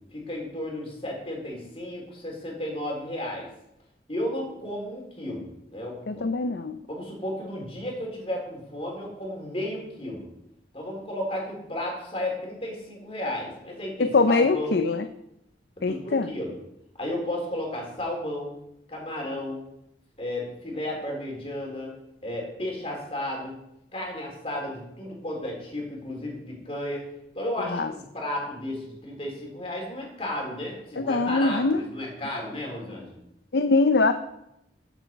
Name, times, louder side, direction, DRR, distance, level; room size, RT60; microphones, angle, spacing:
voice 1, 0.1-3.5 4.1-6.2 6.9-10.3 10.7-14.8 15.9-16.6 17.0-18.6 18.9-19.6 20.2-21.9 22.2-23.6 23.9-27.0 27.3-33.2, left 1 dB, 35° left, -1 dB, 3.8 m, -33 dB
voice 2, 6.1-6.8 14.0-15.1 15.8-16.3 27.7-27.9 31.0-31.8 33.5-34.1, left 3 dB, 70° left, 9 dB, 0.6 m, -22 dB
15.0 x 8.1 x 4.6 m, 0.83 s
head